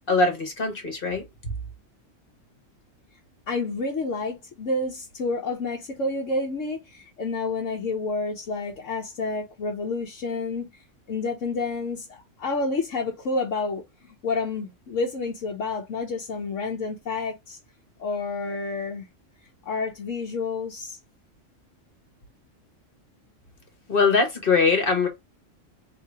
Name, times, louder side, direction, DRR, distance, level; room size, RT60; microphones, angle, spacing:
voice 1, 0.1-1.3 23.9-25.1, left 4 dB, 45° left, 1.6 m, -22 dB
voice 2, 3.5-17.6 18.0-19.1 19.6-21.0, left 3 dB, 75° left, 1.3 m, -29 dB
3.2 x 2.8 x 4.6 m
omnidirectional pair, 1.3 m